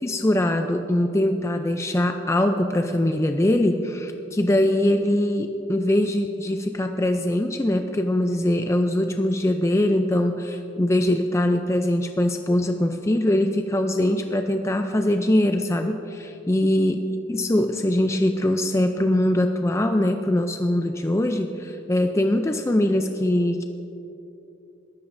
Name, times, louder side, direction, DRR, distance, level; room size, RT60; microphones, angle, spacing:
voice 1, 0.0-17.0 17.3-23.6, left 1 dB, 15° left, 6 dB, 0.4 m, -22 dB
21.5 x 13.0 x 2.6 m, 2.9 s
head